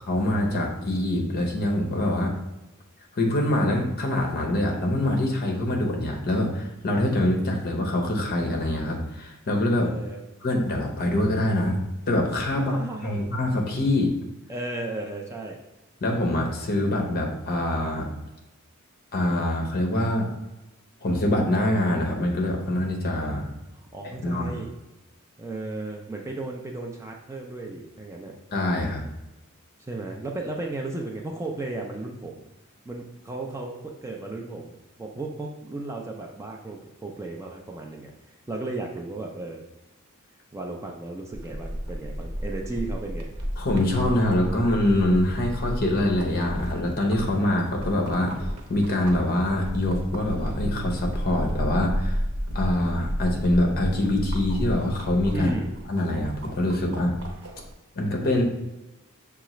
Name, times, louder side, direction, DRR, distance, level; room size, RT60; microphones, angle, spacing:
voice 1, 0.1-2.3 3.1-9.9 10.4-11.8 12.1-14.1 16.0-18.1 19.1-20.3 21.0-23.5 24.2-24.6 28.5-29.0 43.6-48.3 48.7-52.2 52.5-55.5 55.9-57.2 58.0-58.4, left 1 dB, 45° left, 1 dB, 0.8 m, -24 dB
voice 2, 9.8-10.2 12.5-13.3 14.5-15.6 23.7-24.7 25.4-28.4 29.8-32.5 32.9-39.6 40.5-43.3 55.3-55.7, right 2 dB, 15° right, 1 dB, 0.4 m, -35 dB
sound 1, 41.3-57.7, equal, 85° right, 0.8 m, -33 dB
6.6 x 2.4 x 3.0 m, 1.0 s
head